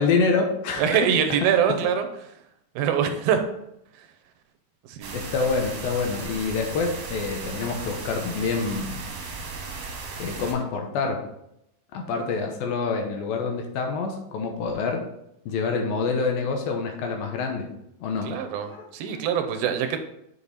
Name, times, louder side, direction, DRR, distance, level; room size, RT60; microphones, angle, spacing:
voice 1, 0.0-1.0 5.1-9.0 10.2-11.2 11.9-15.0 15.5-17.7 18.0-18.3 18.7-19.2, left 4 dB, 75° left, 3 dB, 2.7 m, -27 dB
voice 2, 0.8-2.1 2.8-3.4 4.9-5.2 18.2-20.0, right 8 dB, 80° right, 6 dB, 2.5 m, -24 dB
sound 1, 5.0-10.5, right 4 dB, 55° right, 1.8 m, -36 dB
8.3 x 5.1 x 4.1 m, 0.80 s
omnidirectional pair, 4.4 m